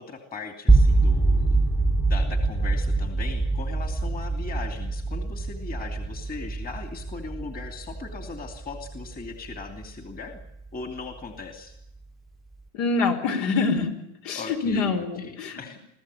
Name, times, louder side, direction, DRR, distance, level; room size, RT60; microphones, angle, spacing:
voice 1, 0.0-1.6 2.1-10.4 10.7-11.7 14.3-15.8, left 4 dB, 20° left, 6 dB, 2.8 m, -38 dB
sound 1, 0.7-10.7, right 3 dB, ahead, 1.3 m, -24 dB
voice 2, 12.7-13.9 14.2-15.8, left 4 dB, 60° left, 6 dB, 4.7 m, -25 dB
22.5 x 15.0 x 10.0 m, 0.81 s
supercardioid pair, 120°, 43 cm